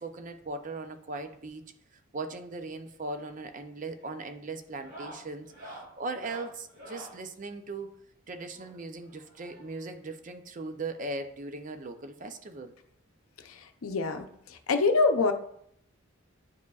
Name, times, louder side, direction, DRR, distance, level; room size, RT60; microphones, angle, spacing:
voice 1, 0.0-1.7 2.1-7.9 8.3-12.7, right 3 dB, 35° right, 8 dB, 0.5 m, -39 dB
sound 1, 3.3-3.5 3.8-4.1 4.7-7.2 8.5-9.9 10.9-11.0 11.3-11.4 11.8-11.9 13.2-13.3 14.6-14.7, right 1 dB, 65° right, 2.7 m, -48 dB
voice 2, 13.8-14.3 14.7-15.3, left 4 dB, 85° left, 7 dB, 0.6 m, -24 dB
9.4 x 4.8 x 2.4 m, 0.70 s
head